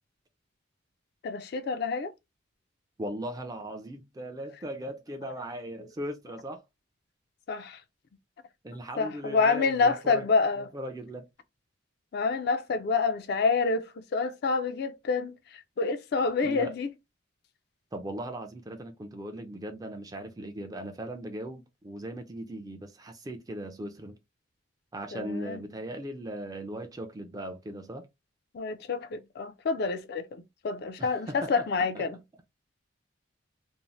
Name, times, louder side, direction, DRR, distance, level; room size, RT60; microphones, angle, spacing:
voice 1, 1.2-2.1 7.5-7.8 9.0-10.7 12.1-13.9 14.1-15.3 15.8-16.9 25.1-25.6 28.5-32.2, left 4 dB, 55° left, 0.3 m, -27 dB
voice 2, 3.0-6.6 8.6-10.3 10.6-11.3 16.4-16.7 17.9-24.2 24.9-28.1 31.0-31.7 31.9-32.0, right 1 dB, 20° right, 0.4 m, -38 dB
2.6 x 2.0 x 3.0 m
head